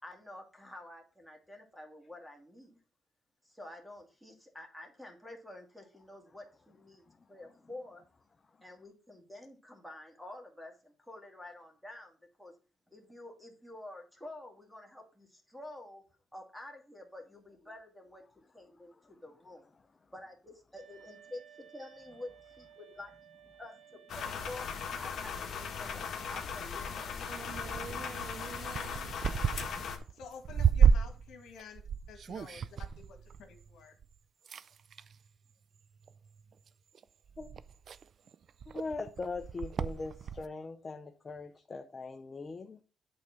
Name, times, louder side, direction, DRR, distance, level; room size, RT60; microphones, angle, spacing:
voice 1, 0.0-2.8 3.4-8.0 8.6-12.5 12.9-16.0 16.3-18.2 18.5-18.9 19.2-19.7 20.1-22.3 22.6-23.1 23.6-23.7 24.1-24.7 25.0-27.1, left 1 dB, ahead, 2.4 m, -49 dB
sound 1, 20.7-24.9, right 9 dB, 70° right, 2.4 m, -57 dB
sound 2, 24.1-30.0, left 6 dB, 60° left, 1.6 m, -38 dB
sound 3, 27.3-34.1 34.5-35.2 36.0-36.4 36.9-37.0 37.3-40.5, right 7 dB, 55° right, 0.4 m, -32 dB
voice 2, 30.1-31.8 32.1-34.0, left 6 dB, 80° left, 1.6 m, -50 dB
voice 3, 38.7-42.8, left 3 dB, 35° left, 0.7 m, -40 dB
9.0 x 3.7 x 5.8 m
cardioid pair, 90°, 0 cm